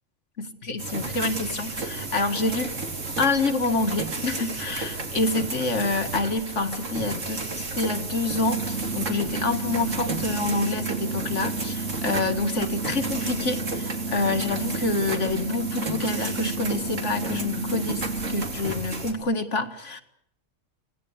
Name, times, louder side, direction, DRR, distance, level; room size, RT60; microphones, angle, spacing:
voice 1, 0.4-2.7 3.2-18.0 18.3-20.0, left 3 dB, 70° left, 7 dB, 2.3 m, -27 dB
sound 1, 0.8-19.1, right 3 dB, 90° right, 3.3 m, -33 dB
sound 2, 8.5-18.5, right 3 dB, 70° right, 2.0 m, -33 dB
26.5 x 19.0 x 9.6 m, 0.73 s
omnidirectional pair, 1.3 m